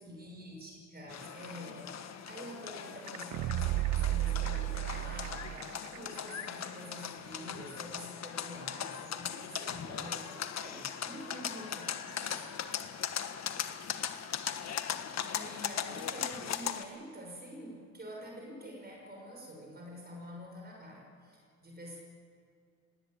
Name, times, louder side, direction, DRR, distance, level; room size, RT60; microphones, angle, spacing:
voice 1, 0.0-12.5 15.2-22.0, equal, 30° right, 0 dB, 5.9 m, -47 dB
sound 1, 1.1-16.8, left 8 dB, 60° left, 1.5 m, -39 dB
sound 2, 3.1-6.0 6.3-6.4, right 17 dB, 80° right, 0.5 m, -33 dB
sound 3, 11.3-15.2, left 5 dB, 25° left, 6.3 m, -58 dB
19.0 x 19.0 x 9.0 m, 2.4 s
cardioid pair, 90°, 30 cm